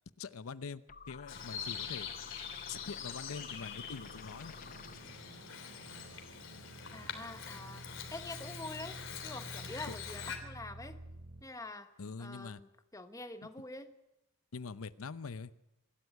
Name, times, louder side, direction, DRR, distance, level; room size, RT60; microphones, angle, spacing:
voice 1, 0.2-2.1 2.7-4.5 9.9-10.0 12.0-12.6 14.5-15.5, left 5 dB, 85° left, 15 dB, 0.7 m, -44 dB
sound 1, 0.9-5.3, left 6 dB, 40° left, 0.7 m, -52 dB
Bird vocalization bird call bird song, 1.3-10.4, left 7 dB, 65° left, 3.3 m, -44 dB
sound 2, 3.9-11.4, right 2 dB, 80° right, 5.3 m, -51 dB
voice 2, 6.9-7.9 8.1-11.0 11.4-11.9 12.2-14.0, left 2 dB, 15° left, 9 dB, 1.2 m, -46 dB
24.5 x 12.5 x 9.5 m, 0.92 s
head